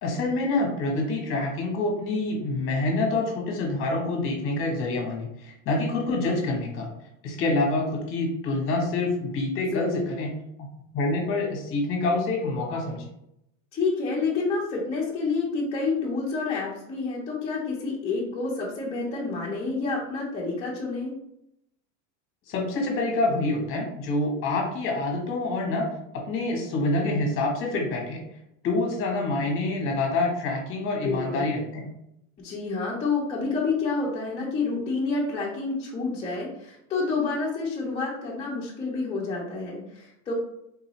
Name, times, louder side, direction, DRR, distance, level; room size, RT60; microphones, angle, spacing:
voice 1, 0.0-6.9 7.2-10.3 10.9-13.1 22.5-25.9 26.3-28.2 28.6-31.9, left 2 dB, 35° left, 1 dB, 1.1 m, -26 dB
voice 2, 9.7-10.1 13.7-21.1 31.0-31.5 32.4-40.3, left 4 dB, 15° left, -7 dB, 0.6 m, -28 dB
3.9 x 2.5 x 3.0 m, 0.79 s
supercardioid pair, 155°, 37 cm